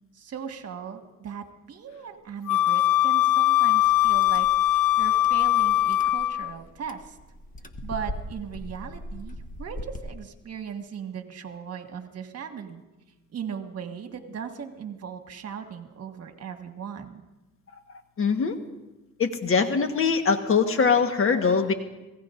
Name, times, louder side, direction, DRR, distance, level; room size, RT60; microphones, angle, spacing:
voice 1, 0.1-7.2 7.8-12.8 13.3-17.2, right 7 dB, 55° right, 5 dB, 1.6 m, -38 dB
Wind instrument woodwind instrument, 2.5-6.5, left 14 dB, 85° left, 0.5 m, -21 dB
sound 1, 3.8-10.1, equal, 25° left, 1.2 m, -40 dB
voice 2, 18.2-18.6 19.2-21.7, left 5 dB, 45° left, 7 dB, 1.3 m, -22 dB
26.0 x 16.5 x 2.6 m, 1.1 s
cardioid pair, 90°, 30 cm